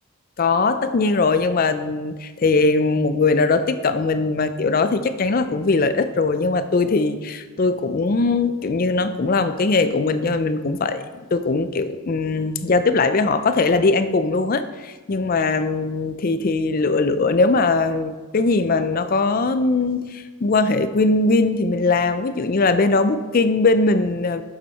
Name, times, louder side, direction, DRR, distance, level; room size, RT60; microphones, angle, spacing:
voice 1, 0.4-24.4, left 3 dB, 40° left, 11 dB, 0.4 m, -20 dB
8.2 x 7.3 x 4.1 m, 1.3 s
head